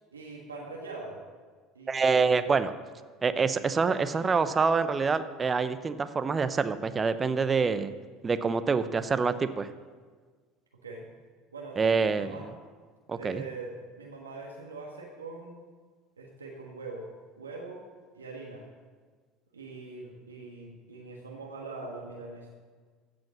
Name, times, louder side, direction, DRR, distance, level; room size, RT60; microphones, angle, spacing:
voice 1, 0.1-1.2 1.7-2.4 10.8-11.0 11.5-12.4 13.1-13.7 14.0-15.6 16.2-17.1 17.4-17.8 18.1-18.7 19.5-22.5, right 3 dB, 85° right, -1 dB, 1.4 m, -42 dB
voice 2, 1.9-2.7 3.2-7.9 8.2-9.7 11.8-12.4 13.1-13.4, right 5 dB, 25° right, 12 dB, 0.7 m, -26 dB
15.0 x 5.2 x 7.1 m, 1.5 s
figure-of-eight pair, 65°, 0 cm